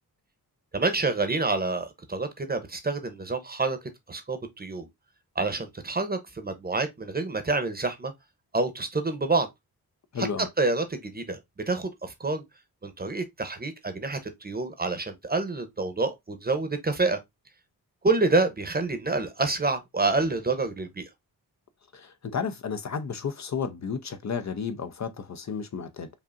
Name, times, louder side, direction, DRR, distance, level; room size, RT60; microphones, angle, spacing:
voice 1, 0.7-3.8 4.1-4.9 5.4-8.1 8.5-9.5 10.2-11.4 11.7-12.4 12.8-17.2 18.0-21.1, right 3 dB, 25° right, 0.8 m, -27 dB
voice 2, 10.1-10.5 21.9-26.1, left 6 dB, 45° left, 0.6 m, -32 dB
5.1 x 2.7 x 2.5 m
wide cardioid pair, 100°, 38 cm